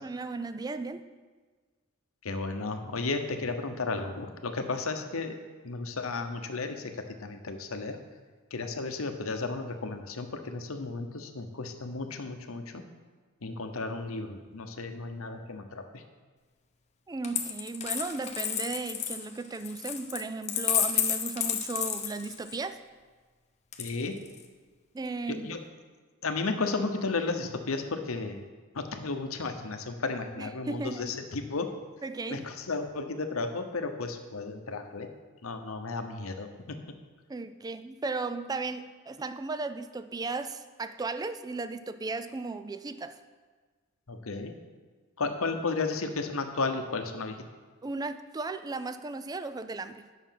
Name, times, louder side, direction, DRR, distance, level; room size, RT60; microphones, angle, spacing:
voice 1, 0.0-1.1 17.1-22.8 24.9-25.5 30.4-31.2 32.0-32.5 37.3-43.2 47.8-50.1, right 3 dB, 15° right, 11 dB, 0.3 m, -36 dB
voice 2, 2.2-5.4 5.6-8.0 8.5-12.8 13.4-16.0 23.8-24.3 25.3-25.6 26.2-28.4 28.7-31.7 32.3-35.1 35.4-36.9 44.1-44.6 45.2-47.4, left 3 dB, 65° left, 6 dB, 0.9 m, -33 dB
Coin (dropping), 17.2-22.6 23.7-24.4, left 8 dB, 30° left, 0.8 m, -31 dB
9.2 x 6.1 x 5.8 m, 1.4 s
head